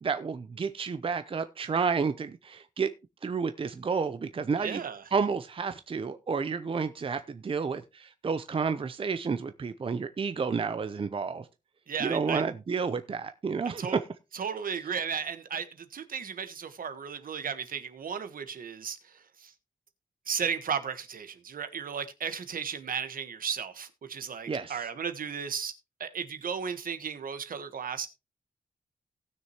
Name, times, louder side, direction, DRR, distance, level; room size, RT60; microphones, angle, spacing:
voice 1, 0.0-2.9 3.2-4.8 5.1-11.5 12.0-14.0 24.5-24.8, right 5 dB, 35° right, 0.6 m, -30 dB
voice 2, 4.6-5.0 11.9-12.4 13.8-14.0 14.3-19.5 20.3-25.7 26.0-28.1, right 7 dB, 70° right, 1.3 m, -35 dB
18.0 x 6.4 x 2.9 m
wide cardioid pair, 120°, 15 cm